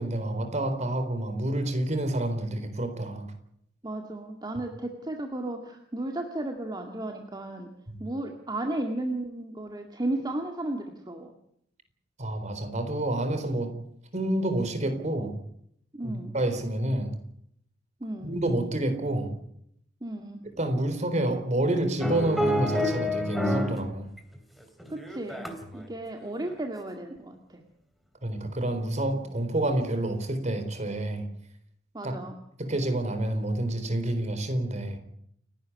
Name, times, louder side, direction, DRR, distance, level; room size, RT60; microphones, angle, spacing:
voice 1, 0.0-3.3 7.9-8.0 12.2-13.7 14.1-15.4 16.0-17.1 18.2-19.3 20.6-24.1 28.2-31.3 32.0-32.2 32.6-35.0, right 1 dB, 40° right, 7 dB, 4.0 m, -28 dB
voice 2, 3.8-7.7 8.0-11.3 15.9-16.3 18.0-18.3 20.0-20.4 24.9-25.5 25.7-27.6 31.9-32.4, right 1 dB, 25° right, 3 dB, 2.0 m, -34 dB
sound 1, 22.0-23.8 24.2-25.8 26.2-26.5, left 1 dB, ahead, 3.0 m, -28 dB
29.0 x 12.0 x 9.7 m, 0.72 s
head